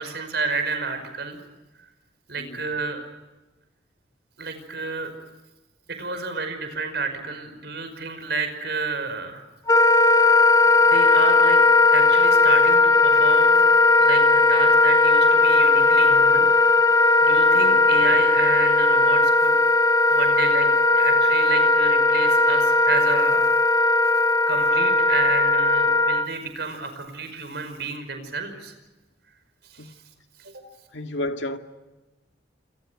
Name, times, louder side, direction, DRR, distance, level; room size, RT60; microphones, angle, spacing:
voice 1, 0.0-1.4 2.3-3.1 4.4-5.1 5.9-9.4 10.8-11.6 11.9-13.7 14.0-16.5 17.0-19.5 20.1-20.7 20.9-23.7 24.5-28.7 29.7-29.9 30.4-30.5, right 4 dB, 60° right, 5.4 m, -30 dB
Wind instrument woodwind instrument, 9.7-26.3, left 3 dB, 20° left, 1.9 m, -17 dB
voice 2, 17.5-17.8 29.8-29.9 30.9-31.6, left 1 dB, 75° left, 2.1 m, -32 dB
28.0 x 27.5 x 6.4 m
head